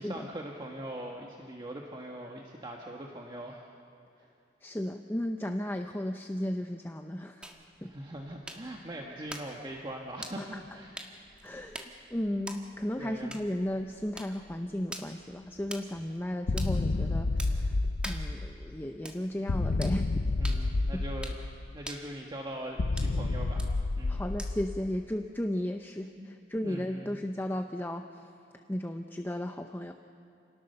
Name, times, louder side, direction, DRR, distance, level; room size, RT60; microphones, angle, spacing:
voice 1, 0.0-3.7 4.2-4.3 7.8-11.0 11.5-11.9 13.0-13.4 20.4-21.3 21.7-23.7 24.0-24.2 26.2-26.3 26.6-27.2, right 1 dB, 25° right, 0 dB, 1.5 m, -41 dB
voice 2, 4.6-7.5 7.8-7.9 10.4-10.6 11.4-11.8 12.1-17.8 18.1-20.1 20.9-21.0 24.1-28.1 28.7-29.9, left 1 dB, 10° left, 5 dB, 0.7 m, -34 dB
sound 1, 7.4-24.8, right 1 dB, 5° right, 1.7 m, -47 dB
sound 2, 16.5-18.8 19.5-21.8 22.8-25.1, left 2 dB, 70° left, 0.6 m, -30 dB
28.5 x 18.5 x 6.7 m, 2.7 s
head